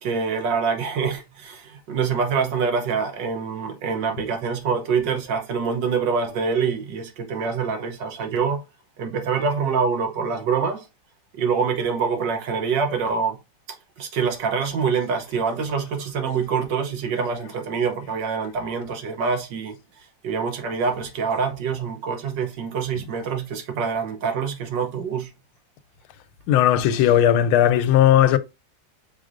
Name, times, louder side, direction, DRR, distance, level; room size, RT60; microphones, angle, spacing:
voice 1, 0.0-8.6 9.0-10.9 11.4-13.4 14.0-19.8 20.2-25.3, right 5 dB, 70° right, 1.4 m, -25 dB
voice 2, 26.5-28.4, left 11 dB, 85° left, 1.5 m, -17 dB
4.9 x 4.1 x 2.5 m
omnidirectional pair, 2.2 m